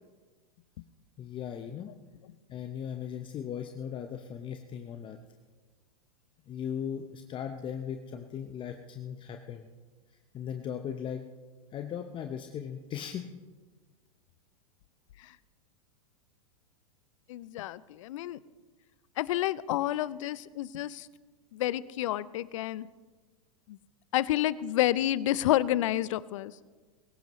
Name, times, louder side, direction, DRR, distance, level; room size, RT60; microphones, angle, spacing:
voice 1, 1.2-1.9 2.5-5.2 6.5-9.7 10.1-11.3 11.7-13.4, left 8 dB, 25° left, 6 dB, 0.9 m, -38 dB
voice 2, 17.3-18.4 19.2-21.1 21.5-22.9 23.7-23.8 24.1-26.5, left 14 dB, 60° left, 19 dB, 0.6 m, -29 dB
23.0 x 15.5 x 3.2 m, 1.4 s
hypercardioid pair, 105°, 19 cm